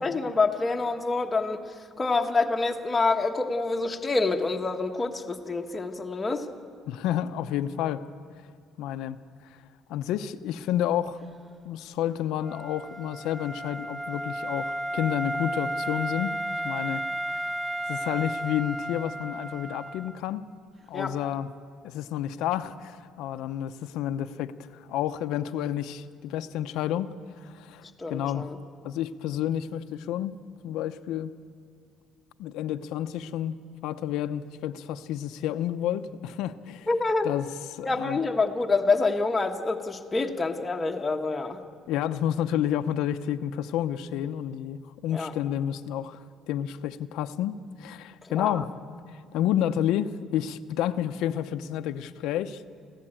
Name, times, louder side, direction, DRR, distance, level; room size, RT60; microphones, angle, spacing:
voice 1, 0.0-1.6 2.0-6.5 20.9-21.1 28.0-28.6 36.9-37.3 37.8-41.6 45.1-45.3 48.3-48.6, left 3 dB, 15° left, 3 dB, 1.2 m, -27 dB
voice 2, 6.9-8.0 8.8-9.2 9.9-11.2 11.6-16.3 16.6-17.0 17.9-20.5 20.9-21.5 21.8-27.1 27.4-27.8 28.1-28.5 28.8-30.4 30.6-31.3 32.4-33.6 33.8-36.9 37.2-38.2 41.9-46.2 46.5-48.7 49.3-52.6, left 11 dB, 80° left, 8 dB, 0.7 m, -30 dB
Wind instrument woodwind instrument, 12.4-20.2, right 1 dB, 20° right, 0.8 m, -33 dB
25.0 x 16.0 x 8.9 m, 2.2 s
cardioid pair, 170°, 0 cm